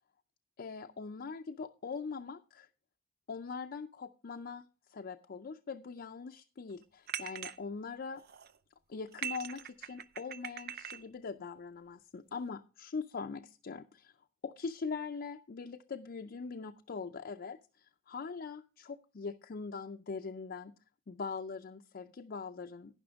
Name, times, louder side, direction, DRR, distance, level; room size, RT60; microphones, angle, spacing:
voice 1, 0.6-2.7 3.3-4.6 4.9-8.2 8.9-14.1 14.4-20.7 21.1-23.0, left 5 dB, 50° left, 6 dB, 0.5 m, -42 dB
sound 1, 7.1-7.6 8.1-8.6 9.1-11.0, right 9 dB, 55° right, 0.6 m, -42 dB
11.5 x 10.0 x 3.5 m, 0.34 s
head